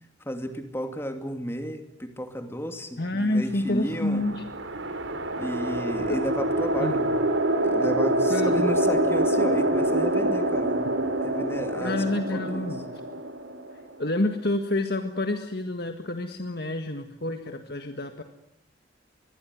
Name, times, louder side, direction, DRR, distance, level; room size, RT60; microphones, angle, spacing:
voice 1, 0.3-4.3 5.4-7.0 7.6-10.7 11.2-12.0 12.3-12.7, equal, 10° left, 7 dB, 2.5 m, -33 dB
voice 2, 3.0-4.5 6.1-6.2 6.8-7.2 8.3-8.7 11.8-13.0 14.0-18.2, left 1 dB, 50° left, 6 dB, 1.7 m, -28 dB
sound 1, 3.9-14.3, right 1 dB, 70° right, 2.9 m, -26 dB
25.5 x 21.5 x 9.6 m, 0.75 s
head